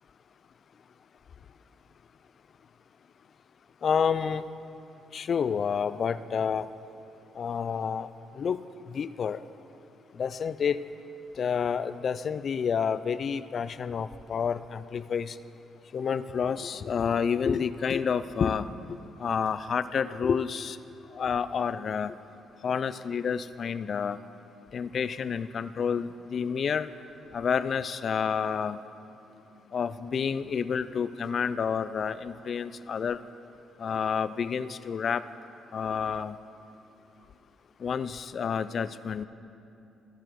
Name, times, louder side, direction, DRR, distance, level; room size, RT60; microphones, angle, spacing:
voice 1, 3.8-4.4 5.1-6.7 7.4-8.1 8.4-8.6 8.9-9.4 10.2-10.8 11.4-15.4 15.9-18.8 19.2-20.8 21.1-22.1 22.6-24.2 24.7-26.9 27.3-28.8 29.7-33.2 33.8-35.2 35.7-36.4 37.8-39.3, left 6 dB, 50° left, 13 dB, 0.3 m, -29 dB
15.5 x 6.7 x 4.6 m, 2.8 s
cardioid pair, 90°, 0 cm